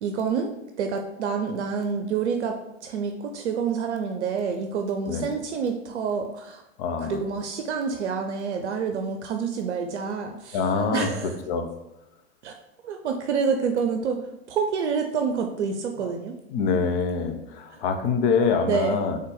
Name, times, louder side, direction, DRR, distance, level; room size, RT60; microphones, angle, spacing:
voice 1, 0.0-6.6 7.0-11.4 12.4-12.5 12.8-16.4 17.7-17.8 18.7-19.0, right 6 dB, 75° right, 4 dB, 0.6 m, -28 dB
voice 2, 6.8-7.2 10.5-11.1 11.5-11.7 16.0-16.1 16.5-19.2, left 5 dB, 50° left, 6 dB, 0.8 m, -25 dB
3.9 x 3.4 x 3.9 m, 0.89 s
hypercardioid pair, 95°, 35 cm